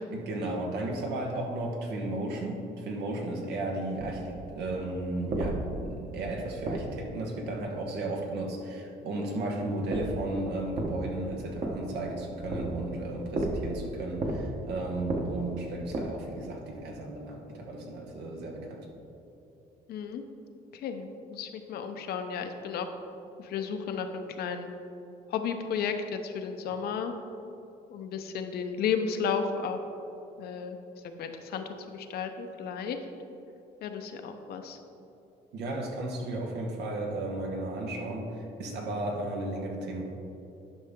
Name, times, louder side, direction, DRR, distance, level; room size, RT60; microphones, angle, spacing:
voice 1, 0.1-18.9 35.5-40.0, right 2 dB, 85° right, 1 dB, 1.3 m, -34 dB
sound 1, 4.0-7.4 9.8-16.5, right 1 dB, 45° right, 1.2 m, -35 dB
voice 2, 19.9-20.2 20.7-22.9 23.4-24.7 25.3-27.1 27.9-29.8 30.4-30.8 31.0-33.0 33.8-34.8, left 6 dB, 70° left, 7 dB, 0.7 m, -33 dB
10.5 x 5.6 x 3.7 m, 2.9 s
cardioid pair, 110°, 17 cm